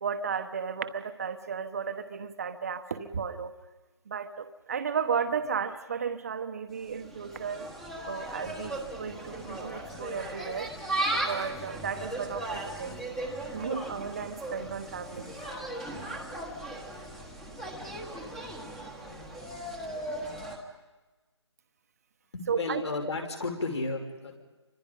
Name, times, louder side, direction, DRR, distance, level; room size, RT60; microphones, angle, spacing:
voice 1, 0.0-3.5 4.1-7.7 8.1-10.7 11.1-13.2 13.5-15.3 22.5-22.8, right 6 dB, 30° right, 9 dB, 1.1 m, -34 dB
Insect, 6.7-20.6, right 1 dB, ahead, 1.3 m, -37 dB
voice 2, 22.3-24.4, left 3 dB, 65° left, 2 dB, 6.0 m, -33 dB
30.0 x 25.5 x 5.4 m, 1.2 s
figure-of-eight pair, 165°, 15 cm